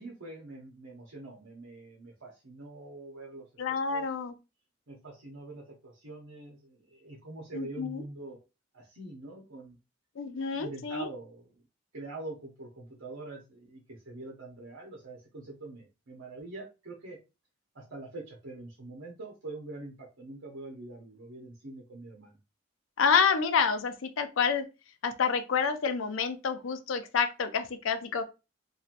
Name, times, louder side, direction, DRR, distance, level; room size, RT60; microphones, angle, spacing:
voice 1, 0.0-3.5 3.9-4.1 4.9-8.4 8.7-9.8 10.4-11.6 11.9-17.2 17.7-22.4, right 2 dB, 90° right, 1.0 m, -44 dB
voice 2, 3.6-4.4 7.5-8.0 10.2-11.1 23.0-24.7 25.0-28.2, left 6 dB, 80° left, 0.5 m, -28 dB
3.0 x 2.7 x 2.5 m
head